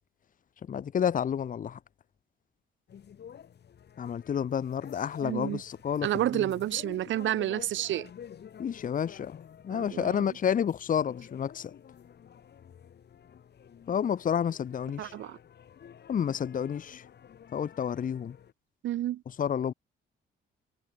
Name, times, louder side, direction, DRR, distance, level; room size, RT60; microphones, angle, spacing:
voice 1, 0.7-1.8 4.0-6.1 6.3-6.5 8.6-9.4 9.6-11.7 13.9-15.1 16.1-17.0 17.5-18.4 19.4-19.7, left 8 dB, 45° left, 0.8 m, -30 dB
sound 1, 2.9-18.5, left 8 dB, 60° left, 7.4 m, -50 dB
voice 2, 5.2-5.6 6.0-8.1 9.7-10.3 15.0-15.4 18.8-19.2, right 13 dB, 75° right, 1.0 m, -30 dB
cardioid pair, 90°, 20 cm